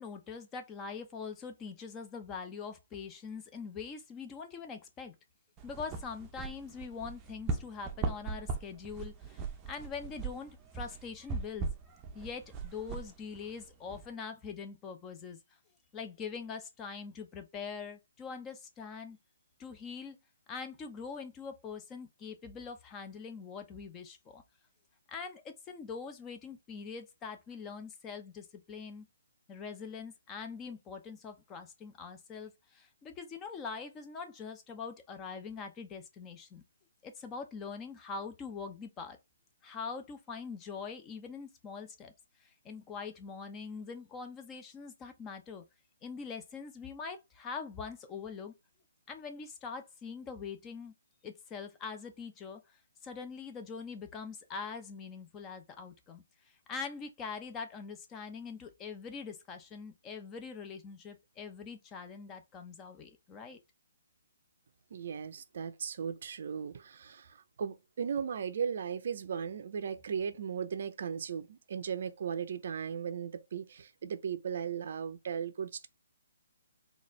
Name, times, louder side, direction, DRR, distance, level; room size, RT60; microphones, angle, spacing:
voice 1, 0.0-5.1 5.6-11.7 12.1-15.4 15.9-19.2 19.6-20.2 20.5-24.4 25.1-29.1 29.5-36.6 37.0-39.2 39.6-42.1 42.4-45.6 46.0-48.5 49.1-50.9 51.2-56.2 56.7-63.6, left 5 dB, 20° left, 0.7 m, -43 dB
sound 1, 5.6-14.1, right 4 dB, 20° right, 0.6 m, -39 dB
voice 2, 64.9-75.9, right 7 dB, 55° right, 0.5 m, -37 dB
4.1 x 2.5 x 3.1 m
hypercardioid pair, 145°, 0 cm